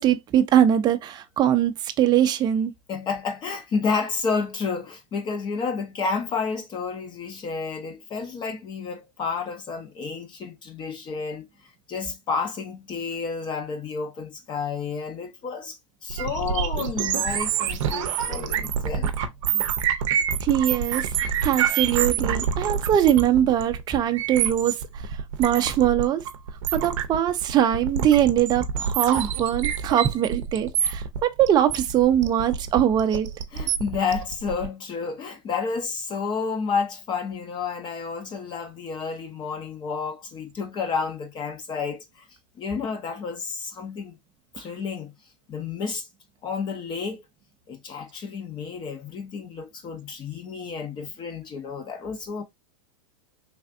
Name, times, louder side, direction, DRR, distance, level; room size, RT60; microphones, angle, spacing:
voice 1, 0.0-2.7 20.4-24.8 25.4-26.2 26.7-33.3, right 10 dB, 25° right, 0.4 m, -22 dB
voice 2, 2.9-11.5 11.9-19.1 19.5-19.6 33.5-42.3 42.6-44.2 44.5-45.1 45.5-46.1 46.4-47.2 47.7-52.4, left 5 dB, 30° left, 0.6 m, -30 dB
sound 1, 16.1-34.7, right 8 dB, 70° right, 0.6 m, -27 dB
3.3 x 2.4 x 2.4 m
hypercardioid pair, 120°, 17 cm